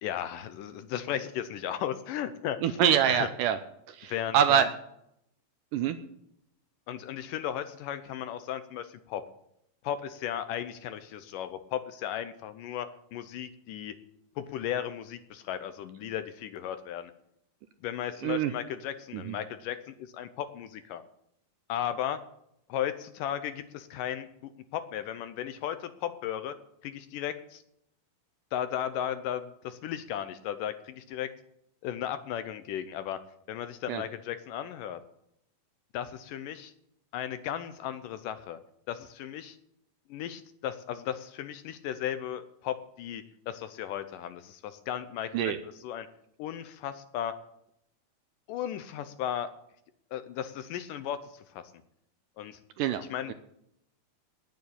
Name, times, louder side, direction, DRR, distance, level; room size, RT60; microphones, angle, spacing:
voice 1, 0.0-2.6 3.1-3.3 4.1-4.7 6.9-9.2 9.8-13.9 14.4-17.1 17.8-21.0 21.7-22.2 22.7-26.5 26.8-27.6 28.5-31.3 31.8-33.2 33.5-35.0 35.9-36.7 37.1-38.6 38.9-39.6 40.1-45.5 45.8-46.1 46.4-47.3 48.5-49.5 50.1-51.6 52.4-52.6 53.1-53.3, left 10 dB, 75° left, 11 dB, 2.2 m, -35 dB
voice 2, 2.6-3.6 3.9-4.7 5.7-6.0 18.2-18.5 19.1-19.4 33.9-34.0 45.3-45.6 52.8-53.3, right 9 dB, 80° right, 10 dB, 2.0 m, -25 dB
10.0 x 9.4 x 8.5 m, 0.76 s
omnidirectional pair, 4.3 m